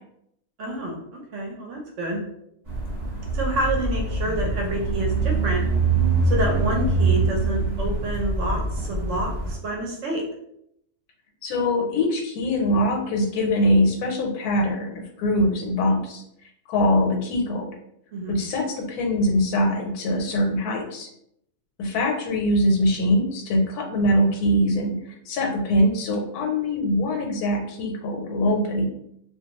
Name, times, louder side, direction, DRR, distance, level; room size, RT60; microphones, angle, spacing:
voice 1, 0.6-2.2 3.3-5.6 6.3-10.2 18.1-18.4, right 1 dB, 65° right, 0 dB, 0.8 m, -28 dB
sound 1, 2.7-9.5, right 3 dB, 30° right, 1.0 m, -24 dB
voice 2, 11.4-16.2 16.7-17.7 18.3-21.1 21.8-25.0 25.3-28.9, left 1 dB, 85° left, 2 dB, 1.1 m, -23 dB
2.5 x 2.2 x 2.8 m, 0.75 s
omnidirectional pair, 1.6 m